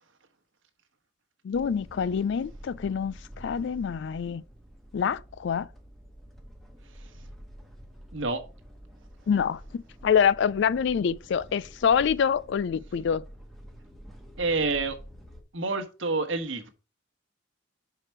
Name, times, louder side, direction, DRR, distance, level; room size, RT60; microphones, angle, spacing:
voice 1, 1.4-4.4 4.9-5.7 9.3-13.2, left 7 dB, 60° left, 0.3 m, -26 dB
sound 1, 1.5-15.4, equal, ahead, 1.1 m, -48 dB
voice 2, 14.4-15.0 15.5-16.7, right 3 dB, 70° right, 1.2 m, -28 dB
5.9 x 4.8 x 4.5 m
head